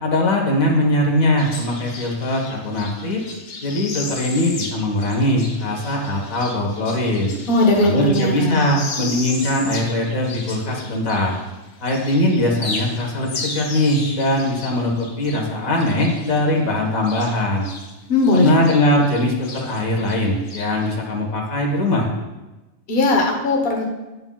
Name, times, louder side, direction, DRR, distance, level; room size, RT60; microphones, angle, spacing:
voice 1, 0.0-3.2 3.6-7.3 7.8-11.4 11.8-17.6 18.3-22.1, left 1 dB, 85° left, 1 dB, 1.9 m, -21 dB
sound 1, 1.4-11.6 11.8-17.9 18.2-20.9, left 3 dB, 70° left, 1.4 m, -35 dB
voice 2, 7.5-8.7 18.1-18.6 22.9-23.8, left 2 dB, 45° left, 0 dB, 1.3 m, -18 dB
11.5 x 8.8 x 2.4 m, 1.1 s
omnidirectional pair, 1.4 m